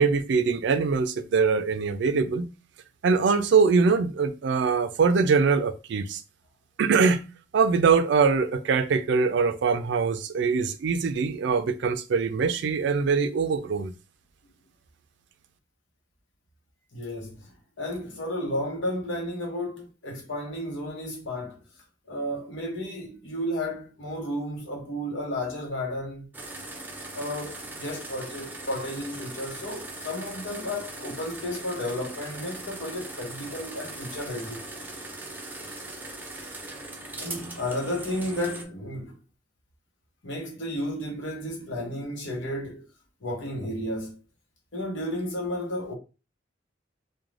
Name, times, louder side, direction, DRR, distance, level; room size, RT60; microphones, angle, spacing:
voice 1, 0.0-2.5 3.0-6.2 6.8-7.2 7.5-13.9, right 5 dB, 70° right, 0.4 m, -23 dB
voice 2, 16.9-17.5 17.8-21.6 22.1-26.3 27.1-34.6 37.2-39.1 40.2-42.8 43.2-44.2 44.7-45.9, left 1 dB, 80° left, 0.8 m, -32 dB
sound 1, 26.3-38.6, right 2 dB, 10° right, 0.5 m, -40 dB
2.4 x 2.2 x 3.1 m
head